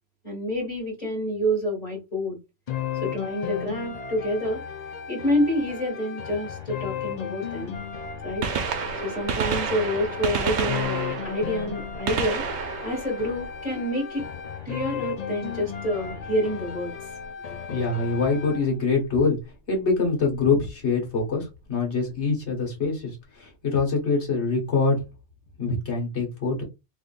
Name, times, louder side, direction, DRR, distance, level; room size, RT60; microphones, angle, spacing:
voice 1, 0.2-2.4 3.0-4.6 5.1-7.8 8.2-8.5 9.0-14.3 14.7-16.9, equal, 30° left, 2.3 m, -28 dB
sound 1, 2.7-18.7, left 8 dB, 85° left, 0.3 m, -35 dB
Gunshot gunfire, 7.7-7.8 8.3-14.1 16.1-16.2 17.2-17.3 18.9-19.0 20.4-20.5 20.7-20.8, right 6 dB, 75° right, 1.0 m, -30 dB
voice 2, 17.7-19.4 19.7-25.0 25.6-26.6, left 4 dB, 60° left, 1.8 m, -24 dB
3.6 x 3.4 x 2.5 m
omnidirectional pair, 1.3 m